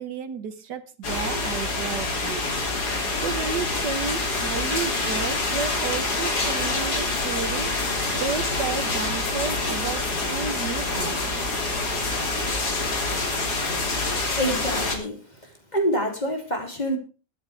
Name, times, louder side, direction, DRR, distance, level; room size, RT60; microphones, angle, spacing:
voice 1, 0.0-2.4 3.2-7.7 8.2-10.1 10.3-11.2, right 6 dB, 70° right, 11 dB, 1.7 m, -32 dB
sound 1, 1.0-15.0, left 2 dB, 60° left, 3.3 m, -26 dB
voice 2, 14.3-15.2 15.7-17.0, equal, 25° left, 3 dB, 3.2 m, -26 dB
21.5 x 9.6 x 3.4 m, 0.34 s
omnidirectional pair, 1.9 m